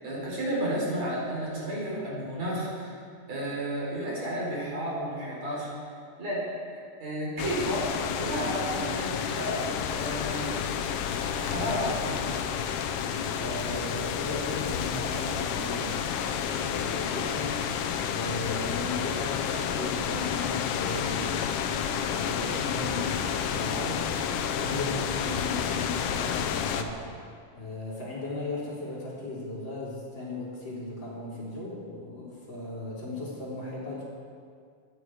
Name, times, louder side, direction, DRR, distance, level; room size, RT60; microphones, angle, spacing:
voice 1, 0.0-3.0 3.3-5.7 6.2-6.4 6.7-7.8 8.2-9.6 9.9-10.5 11.4-12.4, right 1 dB, 55° right, -5 dB, 5.3 m, -32 dB
sound 1, 7.4-26.8, left 8 dB, 85° left, 2.4 m, -30 dB
voice 2, 13.3-17.6 18.1-24.1 24.6-27.1 27.5-34.0, left 2 dB, 35° left, -7 dB, 4.2 m, -37 dB
25.0 x 10.0 x 4.8 m, 2.1 s
omnidirectional pair, 3.5 m